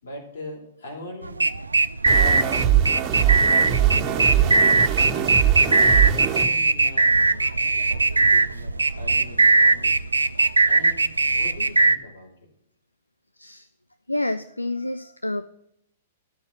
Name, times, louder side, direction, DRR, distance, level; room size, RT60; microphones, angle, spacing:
voice 1, 0.0-1.4 2.1-2.6 3.2-4.9 5.2-7.5 7.9-10.0 10.7-12.3, left 1 dB, 65° left, -1 dB, 3.6 m, -40 dB
sound 1, 1.2-12.0, right 3 dB, 80° right, 0.3 m, -19 dB
sound 2, 2.1-6.4, right 10 dB, 25° right, 1.5 m, -22 dB
voice 2, 13.4-13.7 14.1-15.5, left 1 dB, 85° left, 13 dB, 0.3 m, -28 dB
12.0 x 4.4 x 8.3 m, 0.77 s
figure-of-eight pair, 110°, 0 cm